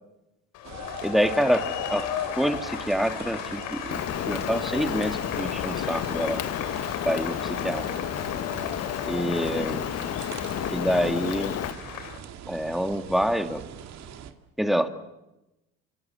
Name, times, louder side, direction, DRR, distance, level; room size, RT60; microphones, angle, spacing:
sound 1, 0.5-12.2, left 9 dB, 75° left, 3.6 m, -36 dB
sound 2, 0.6-14.3, right 9 dB, 60° right, 2.3 m, -43 dB
voice 1, 1.0-2.1 2.4-4.0 4.3-6.4 7.0-7.9 9.0-9.8 10.7-11.5 12.5-13.6 14.6-14.9, equal, ahead, 8 dB, 2.1 m, -26 dB
Rain, 3.9-11.7, left 10 dB, 50° left, 1.3 m, -31 dB
27.5 x 26.5 x 7.8 m, 0.96 s
supercardioid pair, 90°, 31 cm